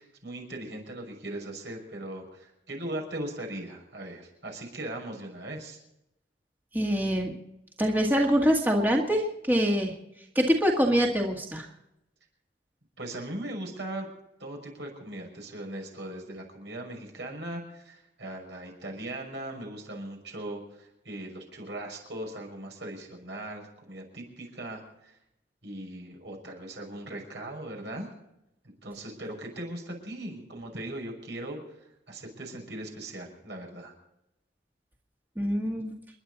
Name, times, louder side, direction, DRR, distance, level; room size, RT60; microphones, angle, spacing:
voice 1, 0.0-5.8 13.0-14.1 14.4-25.2 25.6-28.1 28.6-33.9, right 1 dB, 70° right, 2 dB, 6.2 m, -39 dB
voice 2, 6.7-7.3 7.8-9.9 10.4-11.7 35.4-35.9, equal, 10° right, 0 dB, 2.0 m, -24 dB
29.5 x 11.0 x 4.1 m, 0.85 s
head